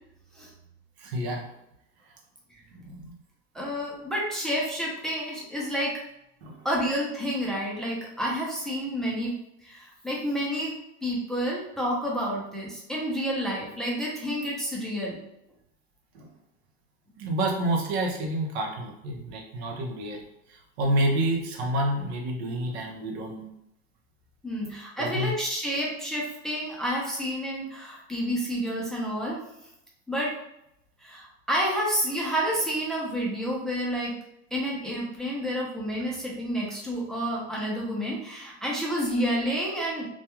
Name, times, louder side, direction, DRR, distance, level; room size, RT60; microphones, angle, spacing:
voice 1, 1.0-1.5 2.7-3.1 6.4-6.7 16.1-16.3 17.2-20.2 20.5-23.5 24.6-24.7 25.0-25.3, right 1 dB, 80° right, 1 dB, 0.7 m, -29 dB
voice 2, 3.5-5.9 6.6-9.4 9.6-10.8 11.0-15.2 24.4-29.4 30.1-30.3 31.0-34.2 34.5-40.1, equal, ahead, -4 dB, 0.5 m, -29 dB
2.3 x 2.3 x 2.9 m, 0.80 s
supercardioid pair, 130°, 32 cm